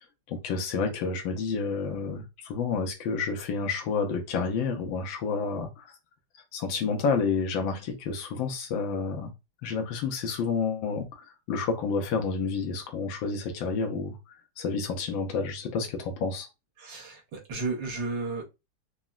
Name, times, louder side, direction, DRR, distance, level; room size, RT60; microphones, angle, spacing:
voice 1, 0.3-5.9 6.5-9.3 9.6-14.2 14.6-16.5, left 5 dB, 90° left, 1.5 m, -30 dB
voice 2, 16.8-18.4, right 3 dB, 75° right, 1.5 m, -33 dB
4.0 x 2.0 x 2.3 m
omnidirectional pair, 2.1 m